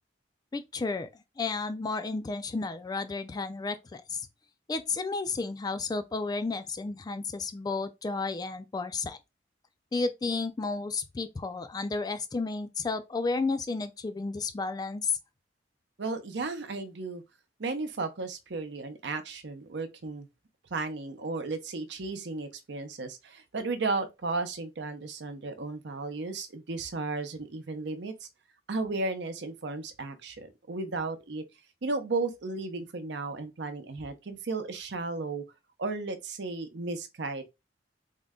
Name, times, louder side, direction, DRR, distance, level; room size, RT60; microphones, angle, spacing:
voice 1, 0.5-1.1 1.4-4.2 4.7-9.2 9.9-15.1, left 3 dB, 20° left, 0.3 m, -32 dB
voice 2, 16.0-17.2 17.6-20.3 20.7-28.3 28.7-31.4 31.8-35.4 35.8-37.4, right 3 dB, 70° right, 0.7 m, -34 dB
3.6 x 2.1 x 3.6 m
head